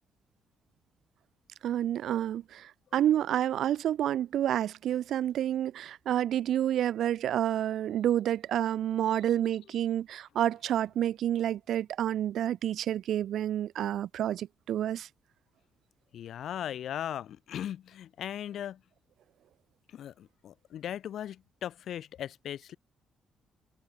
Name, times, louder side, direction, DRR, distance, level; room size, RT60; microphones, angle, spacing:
voice 1, 1.6-15.1, right 11 dB, 75° right, 0.5 m, -29 dB
voice 2, 16.1-18.8 19.9-22.8, left 10 dB, 70° left, 2.1 m, -38 dB
cardioid pair, 90°, 0 cm